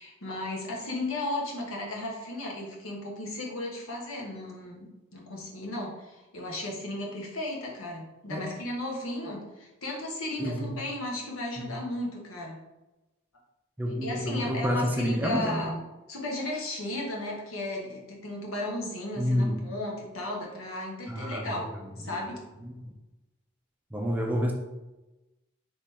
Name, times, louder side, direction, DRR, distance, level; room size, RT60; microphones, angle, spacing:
voice 1, 0.0-12.6 14.0-15.8 16.1-21.6 22.0-22.4, left 1 dB, 85° left, -1 dB, 1.1 m, -35 dB
voice 2, 10.4-10.8 11.6-11.8 13.8-15.7 19.2-19.7 21.1-21.7 22.0-22.2 22.6-22.9 23.9-24.5, equal, 10° right, 0 dB, 0.5 m, -29 dB
3.7 x 3.1 x 4.2 m, 1.0 s
head